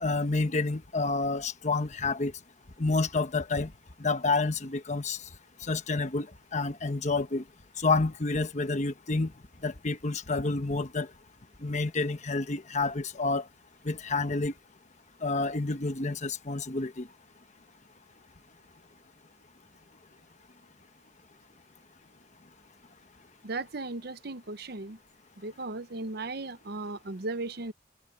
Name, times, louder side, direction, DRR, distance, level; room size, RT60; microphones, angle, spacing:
voice 1, 0.0-2.3 2.8-3.7 4.0-5.2 5.6-6.3 6.5-7.4 7.8-9.3 9.6-11.1 11.6-13.5 13.8-14.5 15.2-17.1, left 3 dB, 40° left, 1.1 m, -29 dB
voice 2, 23.4-25.0 25.4-27.7, right 2 dB, 55° right, 0.9 m, -36 dB
head